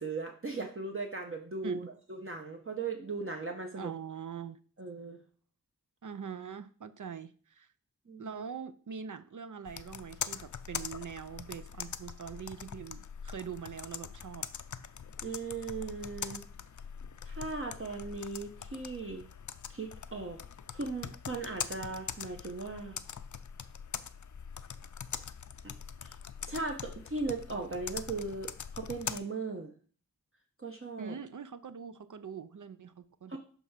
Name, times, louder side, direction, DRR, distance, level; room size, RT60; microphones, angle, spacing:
voice 1, 0.0-3.9 4.8-5.2 8.1-8.4 15.2-16.4 17.2-19.2 19.7-20.4 20.7-23.0 25.6-25.7 26.0-26.1 26.5-29.7 30.6-31.1 33.3-33.4, right 3 dB, 40° right, 0.9 m, -38 dB
voice 2, 3.7-4.6 6.0-7.7 8.2-14.5 31.0-33.4, right 7 dB, 65° right, 0.5 m, -43 dB
Computer keyboard, 9.7-29.2, left 7 dB, 60° left, 0.4 m, -43 dB
6.1 x 3.4 x 5.6 m
wide cardioid pair, 45°, 34 cm